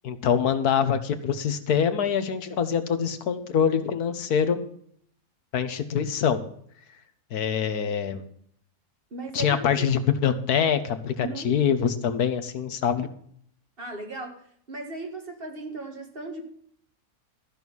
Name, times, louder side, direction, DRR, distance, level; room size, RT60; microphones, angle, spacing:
voice 1, 0.0-4.6 5.5-6.4 7.3-8.2 9.3-13.1, left 7 dB, 85° left, 10 dB, 1.6 m, -24 dB
voice 2, 9.1-9.9 11.2-11.5 13.8-16.5, right 2 dB, 40° right, 3 dB, 2.1 m, -37 dB
13.5 x 6.3 x 7.1 m, 0.64 s
omnidirectional pair, 1.6 m